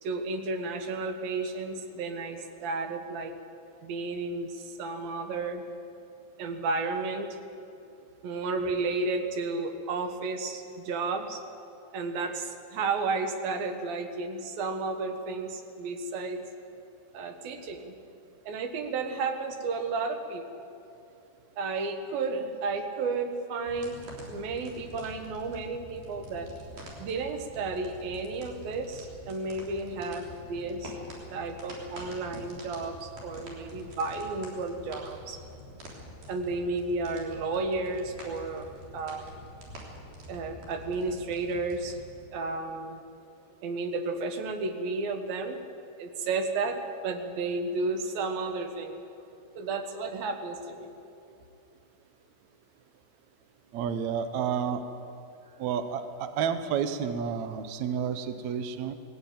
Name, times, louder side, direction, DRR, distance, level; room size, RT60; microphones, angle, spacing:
voice 1, 0.0-3.3 3.8-5.6 6.4-7.4 8.2-11.4 11.9-16.4 17.1-18.0 18.5-20.7 21.6-26.5 27.0-31.0 31.3-35.4 36.3-39.4 40.3-42.0 42.3-43.0 43.6-45.6 46.0-46.8 47.0-49.0 49.6-50.9, right 3 dB, 65° right, 6 dB, 3.0 m, -32 dB
sound 1, 23.7-42.2, equal, 50° right, 4.7 m, -46 dB
voice 2, 53.7-54.8 55.6-58.9, right 7 dB, 85° right, 9 dB, 1.6 m, -30 dB
19.0 x 16.0 x 9.2 m, 2.7 s
omnidirectional pair, 4.7 m